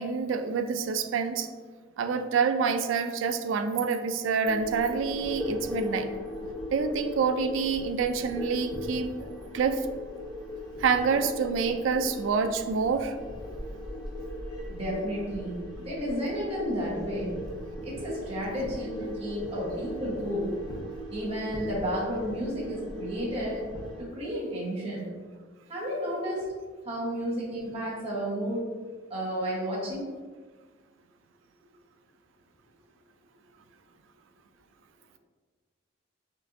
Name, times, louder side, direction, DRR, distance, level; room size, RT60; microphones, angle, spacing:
voice 1, 0.0-1.5 2.0-6.1 6.7-9.9 10.8-13.2, right 5 dB, 85° right, 8 dB, 0.3 m, -27 dB
sound 1, 4.4-24.0, left 1 dB, 25° left, 0.8 m, -38 dB
voice 2, 14.7-17.3 17.8-20.5 21.1-23.6 24.1-25.1 25.7-26.5 26.8-28.7 29.1-30.1, equal, 30° right, -6 dB, 1.1 m, -32 dB
5.4 x 2.6 x 2.5 m, 1.4 s
head